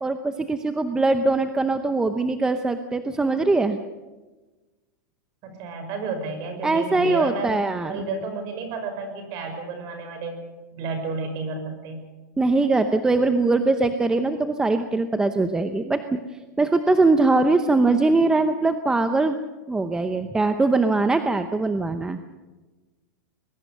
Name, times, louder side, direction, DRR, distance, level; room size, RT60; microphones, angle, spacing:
voice 1, 0.0-3.8 6.6-8.0 12.4-16.2 16.6-19.4 19.7-22.2, right 3 dB, 5° right, 8 dB, 0.8 m, -21 dB
voice 2, 5.4-10.4 10.7-12.0, right 4 dB, 40° right, 7 dB, 5.6 m, -31 dB
22.0 x 20.5 x 6.7 m, 1.2 s
supercardioid pair, 155°, 10 cm